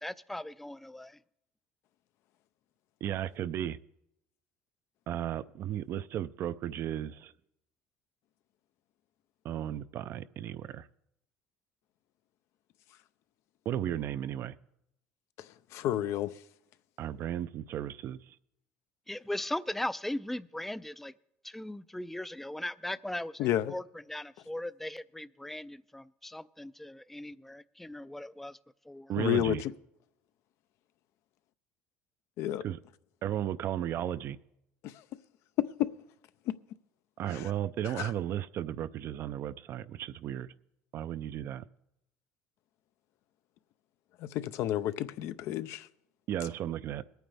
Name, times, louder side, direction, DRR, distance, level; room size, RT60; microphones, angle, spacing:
voice 1, 0.0-1.2 19.1-21.1 21.4-23.8 24.1-28.6 28.9-29.1, left 1 dB, 5° left, 0.3 m, -38 dB
voice 2, 3.0-3.8 5.1-7.3 9.4-10.9 13.7-14.6 17.0-18.2 29.1-29.6 32.6-32.8 33.2-34.4 37.2-40.5 40.9-41.6 46.3-47.0, right 11 dB, 55° right, 0.4 m, -34 dB
voice 3, 15.4-16.3 23.4-23.8 29.2-29.7 32.4-32.6 34.8-34.9 35.6-35.9 36.5-36.6 37.3-37.5 37.8-38.1 44.2-45.9, left 12 dB, 70° left, 0.5 m, -31 dB
21.0 x 9.2 x 3.4 m
cardioid pair, 110°, 5 cm